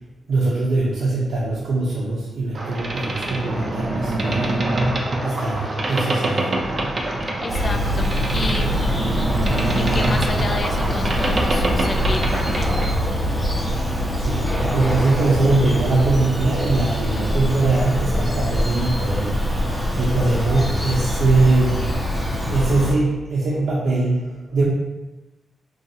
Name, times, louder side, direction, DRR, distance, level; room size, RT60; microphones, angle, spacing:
voice 1, 0.3-6.8 14.2-19.4 20.0-21.9 22.5-24.6, right 3 dB, 80° right, -7 dB, 0.7 m, -22 dB
Boat Water vehicle, 2.5-13.1, right 2 dB, 35° right, 0.5 m, -25 dB
voice 2, 7.1-8.8 9.8-12.9, left 3 dB, 35° left, 5 dB, 0.3 m, -31 dB
Bird vocalization bird call bird song, 7.5-22.9, equal, ahead, 0.8 m, -23 dB
4.1 x 2.8 x 2.7 m, 1.1 s
wide cardioid pair, 140°, 0 cm